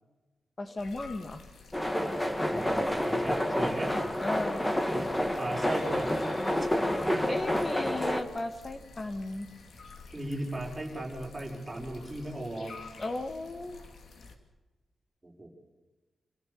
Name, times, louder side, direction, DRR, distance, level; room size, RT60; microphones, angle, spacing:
voice 1, 0.6-1.4 4.2-4.8 7.3-9.5 13.0-13.9, left 2 dB, 25° left, 9 dB, 1.6 m, -35 dB
sound 1, 0.8-14.4, left 4 dB, 60° left, 2.6 m, -50 dB
sound 2, 1.7-8.2, left 1 dB, 10° left, 1.6 m, -29 dB
voice 2, 2.5-4.0 5.4-6.3 6.5-6.7 7.1-7.4 10.1-12.8 15.2-15.5, right 1 dB, 10° right, -2 dB, 5.4 m, -36 dB
27.0 x 15.5 x 6.9 m, 1.2 s
wide cardioid pair, 165°, 0 cm